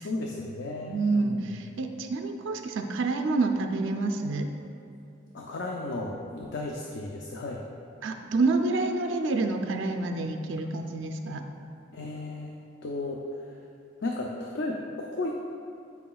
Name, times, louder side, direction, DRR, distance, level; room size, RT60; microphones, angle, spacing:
voice 1, 0.0-1.8 5.3-7.6 11.9-12.5 12.8-13.6 14.0-15.3, left 2 dB, 65° left, 0 dB, 0.5 m, -34 dB
voice 2, 0.9-4.5 8.0-11.4, right 3 dB, 80° right, 5 dB, 0.4 m, -28 dB
8.4 x 5.7 x 2.3 m, 2.5 s
head